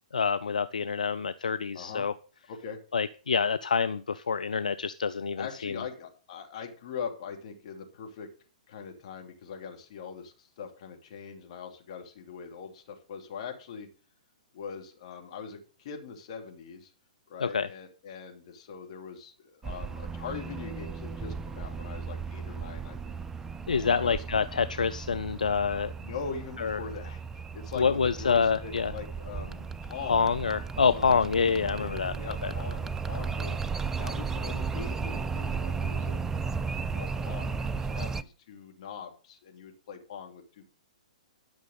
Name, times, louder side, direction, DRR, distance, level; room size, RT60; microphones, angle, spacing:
voice 1, 0.1-2.1 2.9-5.7 17.4-17.7 23.7-25.9 26.6-26.8 27.8-28.9 30.1-32.1 32.4-32.5, left 5 dB, 80° left, 0.6 m, -27 dB
voice 2, 2.5-2.8 5.3-8.3 8.7-13.9 14.5-16.9 17.3-23.2 23.8-24.2 26.0-30.3 30.8-33.6 34.0-36.2 36.4-40.7, left 6 dB, 50° left, 2.8 m, -42 dB
sound 1, 19.6-38.2, right 5 dB, 10° right, 0.5 m, -35 dB
11.5 x 6.2 x 6.6 m
hypercardioid pair, 120°, 4 cm